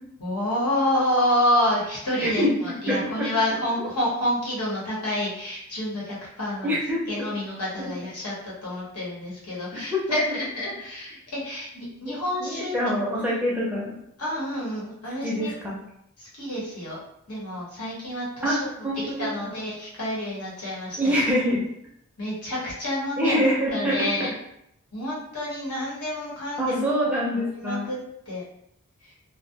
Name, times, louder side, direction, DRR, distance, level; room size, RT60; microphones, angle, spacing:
voice 1, 0.2-6.7 7.1-12.9 13.2-13.4 14.2-15.5 16.2-17.0 17.3-18.7 19.2-21.0 22.2-23.4 23.7-24.3 24.9-28.0 28.3-28.4 29.0-29.1, left 1 dB, 90° left, -6 dB, 1.0 m, -28 dB
voice 2, 2.2-3.3 3.8-3.9 6.6-7.0 9.9-10.2 12.4-13.9 15.2-15.8 18.4-18.6 18.8-19.3 21.0-21.6 23.2-24.0 26.6-27.9, equal, 5° right, -6 dB, 0.5 m, -25 dB
2.3 x 2.1 x 2.7 m, 0.74 s
head